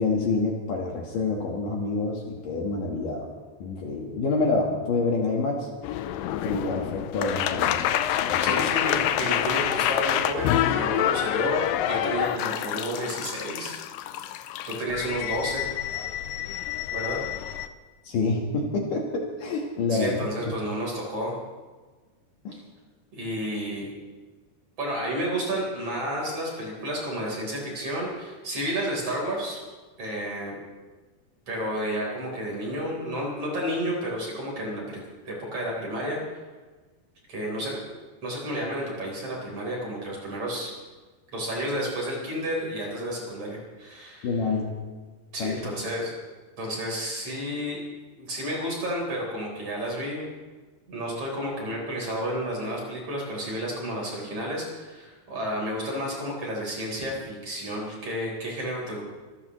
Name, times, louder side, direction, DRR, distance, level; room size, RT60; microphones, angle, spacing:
voice 1, 0.0-3.3 3.6-5.7 6.4-8.6 18.0-20.3 22.4-22.6 44.2-44.7 45.4-45.7, left 3 dB, 60° left, 0 dB, 2.8 m, -27 dB
sound 1, 5.8-17.7, left 11 dB, 85° left, 2.0 m, -27 dB
voice 2, 8.4-13.8 14.7-15.7 16.9-17.2 19.9-21.3 23.1-23.9 24.8-29.6 30.0-30.6 31.5-36.2 37.3-37.8 38.2-40.7 41.3-44.3 45.3-46.1 46.6-47.8 48.2-50.3 50.9-59.0, equal, 40° right, -2 dB, 4.8 m, -31 dB
25.0 x 15.0 x 3.1 m, 1.3 s
omnidirectional pair, 4.6 m